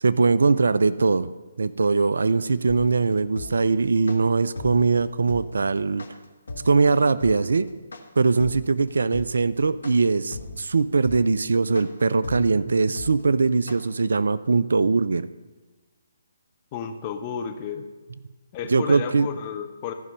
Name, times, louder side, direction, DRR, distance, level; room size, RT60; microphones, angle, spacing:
voice 1, 0.0-1.3 1.6-6.1 6.6-7.7 8.2-15.3 18.7-19.3, right 4 dB, 65° right, 16 dB, 0.4 m, -21 dB
sound 1, 2.7-13.8, left 3 dB, 70° left, 1.1 m, -38 dB
voice 2, 16.7-17.8 18.5-19.9, left 7 dB, 30° left, 6 dB, 0.8 m, -32 dB
14.0 x 5.4 x 5.1 m, 1.3 s
figure-of-eight pair, 140°, 0 cm